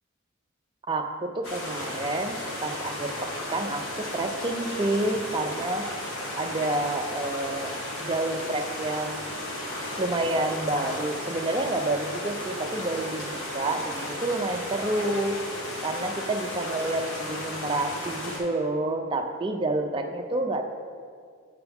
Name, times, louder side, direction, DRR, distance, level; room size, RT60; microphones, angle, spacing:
voice 1, 0.8-5.8 6.4-7.7 8.0-9.3 10.0-15.4 15.8-20.7, right 2 dB, 25° right, 4 dB, 0.4 m, -29 dB
sound 1, 1.4-18.4, left 1 dB, 90° left, 1.5 m, -34 dB
8.8 x 5.8 x 3.5 m, 2.1 s
head